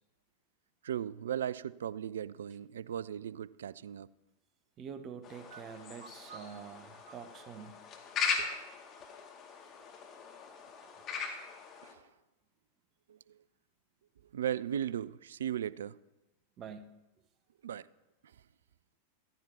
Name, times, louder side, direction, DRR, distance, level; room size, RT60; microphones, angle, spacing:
voice 1, 0.8-4.1 5.5-5.6 6.3-6.6 8.4-8.5 11.8-12.0 13.1-13.4 14.3-16.0 17.6-17.9, right 10 dB, 65° right, 0.3 m, -37 dB
voice 2, 4.8-7.8 8.1-8.2 10.8-10.9 16.6-17.0, right 7 dB, 30° right, 0.8 m, -47 dB
sound 1, 5.2-11.9, left 5 dB, 30° left, 2.1 m, -39 dB
14.5 x 14.5 x 2.8 m
figure-of-eight pair, 90°, 0 cm